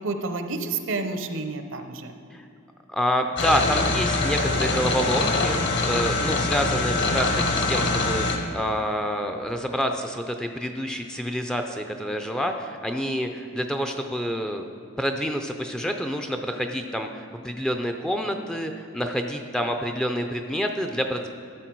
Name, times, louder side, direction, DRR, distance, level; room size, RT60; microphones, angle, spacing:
voice 1, 0.0-2.1, right 3 dB, 60° right, 7 dB, 0.7 m, -30 dB
voice 2, 2.9-14.6 15.0-21.3, equal, 5° left, 4 dB, 0.4 m, -28 dB
sound 1, 3.4-8.4, left 2 dB, 50° left, 1.0 m, -24 dB
13.0 x 6.7 x 4.6 m, 2.4 s
head